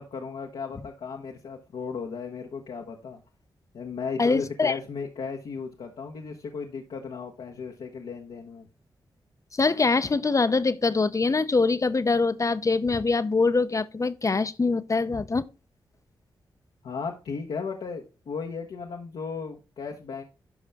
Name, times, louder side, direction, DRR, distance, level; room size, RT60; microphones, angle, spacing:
voice 1, 0.0-3.2 3.7-8.7 16.8-20.2, left 5 dB, 80° left, 1.1 m, -35 dB
voice 2, 4.2-4.7 9.5-15.5, left 3 dB, 35° left, 0.7 m, -23 dB
11.0 x 5.5 x 3.5 m
cardioid pair, 60°, 9 cm